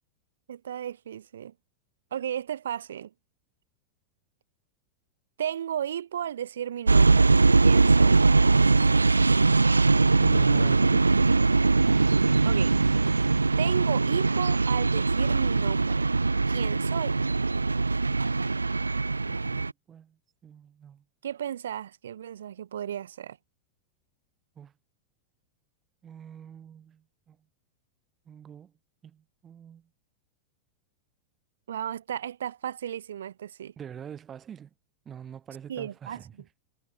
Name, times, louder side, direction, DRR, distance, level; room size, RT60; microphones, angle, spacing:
voice 1, 0.5-1.5 2.1-3.1 5.4-7.3 7.6-8.2 12.4-12.8 13.6-16.1 16.5-17.2 21.2-23.4 31.7-33.7 35.7-36.2, right 9 dB, 65° right, 6.3 m, -34 dB
sound 1, 6.9-19.7, right 3 dB, 80° right, 0.4 m, -21 dB
voice 2, 10.2-11.1 19.3-20.2 20.4-21.0 24.6-24.7 26.0-27.4 28.3-28.7 29.0-29.9 33.8-34.7 35.1-36.3, right 8 dB, 25° right, 7.2 m, -44 dB
figure-of-eight pair, 90°, 0 cm